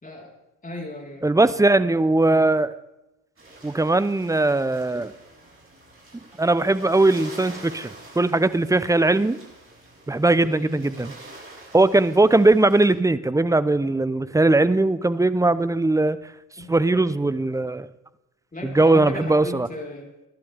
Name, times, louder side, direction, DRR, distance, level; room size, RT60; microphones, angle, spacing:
voice 1, 0.0-1.5 10.4-10.8 16.6-16.7 18.5-20.1, left 1 dB, 20° left, 0 dB, 4.2 m, -36 dB
voice 2, 1.2-2.7 3.6-5.1 6.4-7.9 8.2-9.4 10.1-11.1 11.7-16.2 16.7-17.9 18.6-19.7, right 2 dB, 5° right, 15 dB, 0.7 m, -19 dB
sound 1, 3.4-12.9, right 2 dB, 30° right, 6.7 m, -46 dB
23.0 x 11.5 x 3.5 m, 0.97 s
hypercardioid pair, 55°, 45 cm